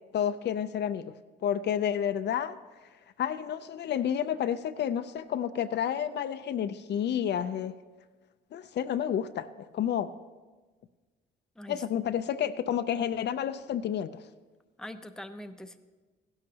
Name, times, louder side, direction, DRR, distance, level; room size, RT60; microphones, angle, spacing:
voice 1, 0.1-1.0 1.4-2.6 3.2-7.8 8.5-10.1 11.7-14.3, left 9 dB, 60° left, 11 dB, 0.5 m, -30 dB
voice 2, 14.8-15.8, left 1 dB, 5° left, 8 dB, 0.6 m, -42 dB
15.5 x 11.5 x 2.8 m, 1.3 s
cardioid pair, 90°, 20 cm